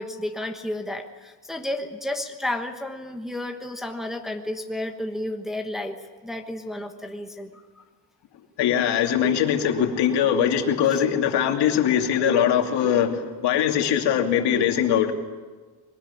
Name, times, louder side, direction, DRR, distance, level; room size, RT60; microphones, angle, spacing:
voice 1, 0.0-7.5 10.9-11.0, left 1 dB, ahead, 3 dB, 1.2 m, -32 dB
voice 2, 8.6-15.1, left 9 dB, 70° left, 4 dB, 2.7 m, -21 dB
22.0 x 19.5 x 9.8 m, 1.4 s
cardioid pair, 165°, 42 cm